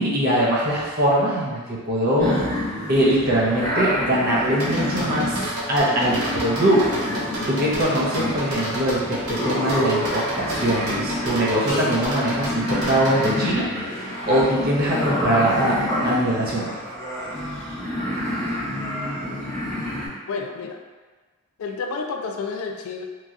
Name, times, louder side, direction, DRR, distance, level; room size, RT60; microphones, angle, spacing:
voice 1, 0.0-2.3 2.9-5.4 5.7-6.8 7.5-13.6 14.3-15.8 16.0-16.8, right 1 dB, 45° right, -6 dB, 0.6 m, -22 dB
sound 1, 2.2-20.1, left 1 dB, 15° left, 0.7 m, -28 dB
sound 2, 4.6-13.4, right 1 dB, 75° right, 0.8 m, -30 dB
voice 2, 20.3-20.8 21.6-23.0, left 4 dB, 70° left, 3 dB, 0.3 m, -30 dB
3.0 x 2.7 x 2.3 m, 1.4 s
head